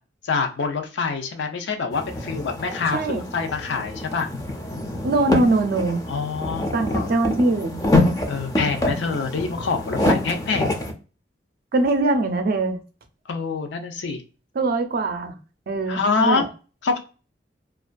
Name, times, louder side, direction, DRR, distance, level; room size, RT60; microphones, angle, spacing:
voice 1, 0.2-4.3 6.1-7.1 8.3-10.7 13.3-14.2 15.9-16.5 16.8-17.0, left 4 dB, 80° left, 5 dB, 0.5 m, -26 dB
sound 1, 1.9-10.9, left 1 dB, 20° left, 0.4 m, -26 dB
voice 2, 2.9-3.2 5.0-6.0 6.7-7.8 11.7-12.8 14.5-15.3 15.7-16.5, right 2 dB, 55° right, 6 dB, 0.5 m, -22 dB
2.3 x 2.2 x 2.4 m, 0.34 s
head